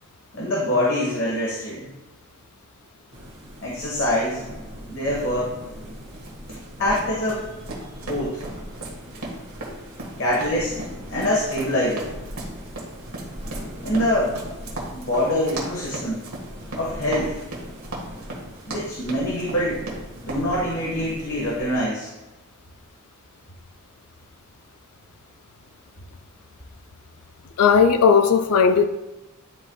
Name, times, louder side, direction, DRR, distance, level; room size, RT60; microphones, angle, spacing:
voice 1, 0.3-1.9 3.6-4.4 4.9-5.5 6.8-7.4 8.0-8.4 10.2-10.7 11.1-12.1 13.8-14.4 14.9-16.2 16.7-17.4 18.7-19.8 20.1-22.1, left 1 dB, 60° left, -5 dB, 1.4 m, -24 dB
sound 1, 3.1-21.9, equal, 45° right, 1.6 m, -40 dB
sound 2, 6.1-20.5, right 2 dB, 80° right, 1.6 m, -36 dB
voice 2, 27.6-28.9, left 6 dB, 85° left, 8 dB, 0.4 m, -16 dB
10.5 x 4.3 x 2.3 m, 1.0 s
head